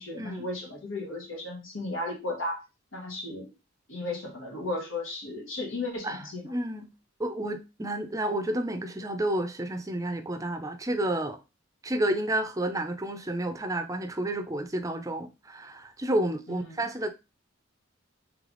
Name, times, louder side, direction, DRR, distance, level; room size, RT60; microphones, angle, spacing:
voice 1, 0.0-2.6 2.9-3.5 3.9-6.5 16.5-16.9, left 2 dB, 90° left, 1.6 m, -35 dB
voice 2, 6.4-6.9 7.2-11.4 11.8-17.1, right 1 dB, 15° right, 0.5 m, -30 dB
3.3 x 3.3 x 3.8 m
head